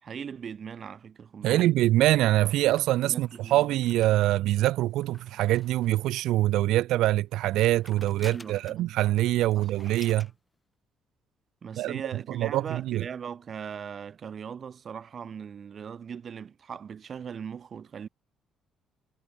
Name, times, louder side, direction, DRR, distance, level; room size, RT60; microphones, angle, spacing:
voice 1, 0.0-1.7 3.0-3.6 8.2-8.9 9.6-9.7 11.6-18.1, right 7 dB, 40° right, 3.1 m, -39 dB
voice 2, 1.4-10.3 11.8-13.0, right 15 dB, 90° right, 0.7 m, -24 dB
sound 1, 2.8-6.4 7.4-8.9 9.2-9.3 9.5-10.4, left 2 dB, 10° left, 3.4 m, -51 dB
cardioid pair, 140°, 0 cm